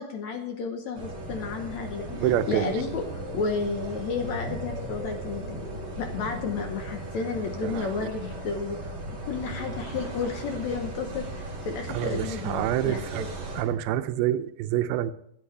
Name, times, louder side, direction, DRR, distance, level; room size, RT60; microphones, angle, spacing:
voice 1, 0.0-2.1 2.5-5.6 6.0-9.0 9.2-13.3, left 4 dB, 65° left, 4 dB, 1.9 m, -32 dB
sound 1, 0.9-13.6, right 1 dB, 35° right, 3.3 m, -37 dB
sound 2, 2.0-6.6, left 1 dB, 40° left, 6.0 m, -41 dB
voice 2, 2.2-2.8 7.6-8.1 11.9-13.3 13.6-15.1, right 12 dB, 90° right, 12 dB, 2.6 m, -27 dB
25.5 x 8.7 x 3.3 m, 0.76 s
omnidirectional pair, 4.3 m